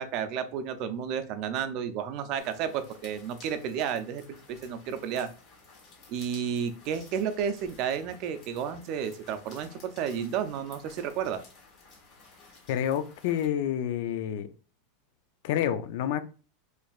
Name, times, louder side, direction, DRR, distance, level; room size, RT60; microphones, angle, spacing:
voice 1, 0.0-4.2 4.5-5.3 6.1-11.4, right 8 dB, 45° right, 0.5 m, -32 dB
sound 1, 2.4-13.5, left 3 dB, 40° left, 1.6 m, -54 dB
voice 2, 12.7-14.5 15.4-16.2, left 10 dB, 60° left, 0.4 m, -28 dB
4.4 x 3.2 x 2.4 m
supercardioid pair, 160°, 0 cm